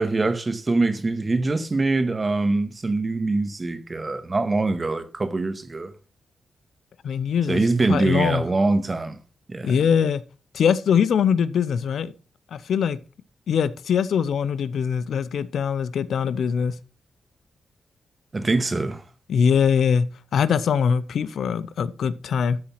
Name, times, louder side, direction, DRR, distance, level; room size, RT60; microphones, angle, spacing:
voice 1, 0.0-5.9 7.5-9.2 9.5-9.9 18.3-19.0, right 3 dB, 35° right, 1.7 m, -23 dB
voice 2, 7.0-7.6 7.9-8.4 9.6-10.2 10.5-12.1 12.5-13.0 13.5-16.7 19.3-22.6, left 7 dB, 80° left, 0.6 m, -22 dB
13.0 x 4.3 x 5.6 m
cardioid pair, 60°, 0 cm